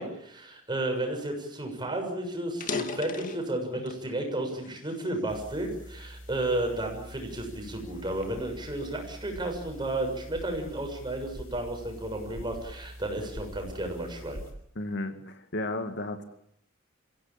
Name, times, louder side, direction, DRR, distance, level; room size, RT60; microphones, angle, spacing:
voice 1, 0.0-14.4, right 1 dB, 25° right, 2 dB, 6.9 m, -33 dB
sound 1, 1.4-1.5 1.8-2.0 2.5-4.1 4.6-5.9 6.5-6.7 7.4-9.4, left 4 dB, 40° left, 2.0 m, -38 dB
sound 2, 5.3-14.5, equal, 90° left, 5.8 m, -45 dB
voice 2, 14.8-16.2, left 2 dB, 60° left, 7 dB, 2.2 m, -33 dB
28.0 x 16.5 x 8.8 m, 0.71 s
head